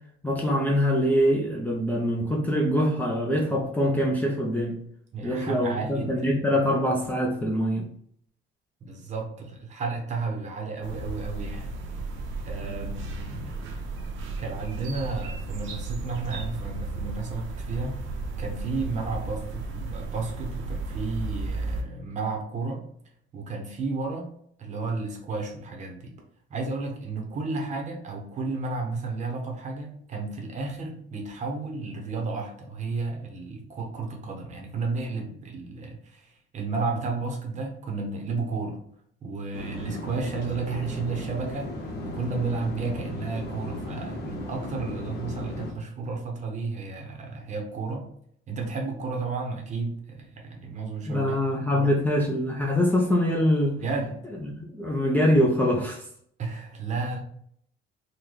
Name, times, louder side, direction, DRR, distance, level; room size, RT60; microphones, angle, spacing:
voice 1, 0.2-4.8 5.2-7.8 51.1-53.8 54.4-56.1, equal, 10° left, -2 dB, 0.4 m, -24 dB
voice 2, 5.1-6.3 8.8-11.8 12.5-13.5 14.4-18.0 18.4-22.8 23.3-24.3 24.6-26.1 26.5-38.8 39.2-48.1 48.5-51.4 51.7-51.9 53.8-54.2 56.4-57.2, right 4 dB, 35° right, 1 dB, 0.7 m, -32 dB
sound 1, 10.8-21.8, right 3 dB, 90° right, 0.6 m, -34 dB
sound 2, 39.5-45.7, left 1 dB, 55° left, 0.9 m, -36 dB
3.8 x 2.2 x 3.1 m, 0.67 s
cardioid pair, 160°, 20 cm